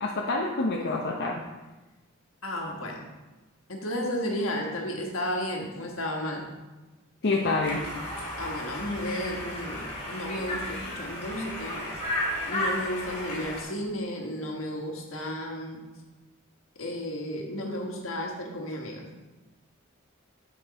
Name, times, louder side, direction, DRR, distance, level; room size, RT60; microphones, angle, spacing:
voice 1, 0.0-1.4 7.2-7.8, left 3 dB, 55° left, -1 dB, 0.7 m, -27 dB
voice 2, 2.4-3.0 3.7-6.5 8.4-11.8 12.5-15.8 16.8-19.1, equal, 70° left, 0 dB, 1.5 m, -33 dB
Conversation, 7.6-13.6, left 1 dB, 35° left, 2.5 m, -33 dB
7.9 x 5.3 x 4.2 m, 1.1 s
head